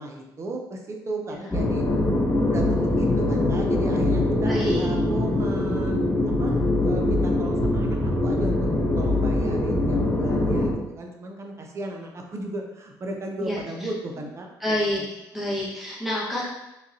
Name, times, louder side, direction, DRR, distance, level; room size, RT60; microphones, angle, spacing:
voice 1, 0.0-1.9 2.4-8.6 9.0-15.1, right 2 dB, 35° right, 2 dB, 0.7 m, -35 dB
sound 1, 1.5-10.7, left 1 dB, 20° left, 0.8 m, -23 dB
voice 2, 4.4-4.8 13.4-13.9 14.6-15.0 15.3-16.5, left 1 dB, ahead, -6 dB, 1.4 m, -28 dB
3.6 x 3.2 x 2.8 m, 0.96 s
supercardioid pair, 85°, 8 cm